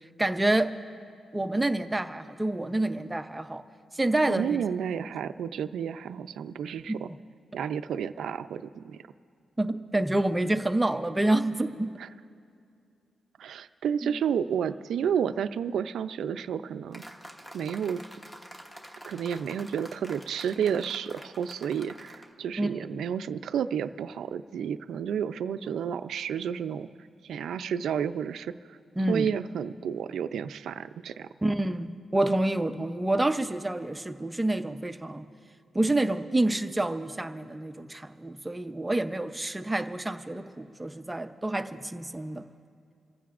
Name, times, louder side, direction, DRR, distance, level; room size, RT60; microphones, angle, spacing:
voice 1, 0.2-0.7 1.3-3.6 3.9-4.6 6.9-7.0 7.5-7.6 9.6-11.9 14.0-14.2 22.6-22.9 29.0-29.3 31.4-35.3 35.7-42.4, right 1 dB, 10° right, 8 dB, 0.5 m, -28 dB
voice 2, 4.3-7.1 7.5-9.0 13.4-17.0 17.5-18.0 19.1-26.9 27.2-28.8 29.1-31.3, right 8 dB, 75° right, 11 dB, 0.4 m, -31 dB
sound 1, 16.9-22.3, equal, 10° left, 1.0 m, -47 dB
27.5 x 15.0 x 2.5 m, 2.4 s
wide cardioid pair, 165°, 0 cm